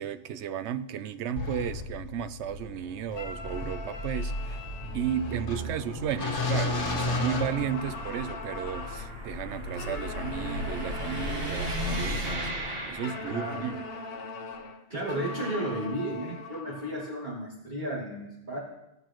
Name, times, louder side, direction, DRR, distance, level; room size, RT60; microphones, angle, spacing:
voice 1, 0.0-4.6 4.9-13.9, right 9 dB, 75° right, 0.9 m, -34 dB
sound 1, 1.4-8.3, left 2 dB, 80° left, 1.6 m, -33 dB
sound 2, 2.5-13.8, equal, 55° right, 1.7 m, -37 dB
sound 3, 3.1-6.2 6.6-9.2 9.7-12.4 13.0-17.2, left 3 dB, 55° left, 1.0 m, -41 dB
voice 2, 13.2-13.7 14.9-18.6, right 1 dB, 40° right, 3.1 m, -34 dB
18.0 x 6.9 x 3.0 m
omnidirectional pair, 1.2 m